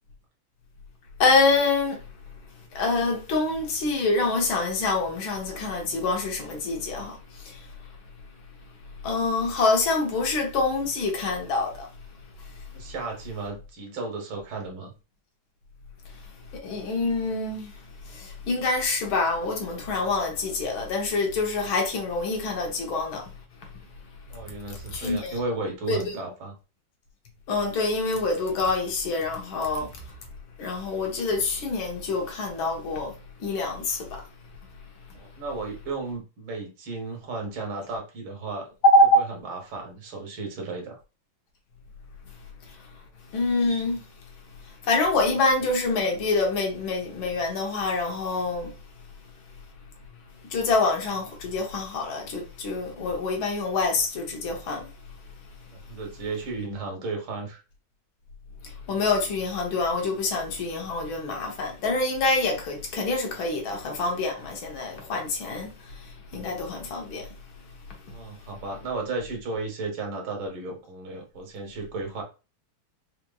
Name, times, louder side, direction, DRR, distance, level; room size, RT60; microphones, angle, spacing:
voice 1, 1.2-2.0 2.7-7.7 9.0-11.9 16.6-17.8 18.1-23.3 24.9-25.3 25.9-26.0 27.5-30.0 30.6-34.2 38.8-39.1 42.7-42.8 43.3-44.0 44.8-48.7 50.5-54.9 58.9-67.3, left 3 dB, 75° left, 1.8 m, -26 dB
voice 2, 12.7-14.9 24.3-26.6 35.1-38.7 39.2-41.0 55.7-57.6 68.1-72.2, right 3 dB, 80° right, 1.9 m, -34 dB
4.9 x 3.0 x 2.3 m
omnidirectional pair, 2.2 m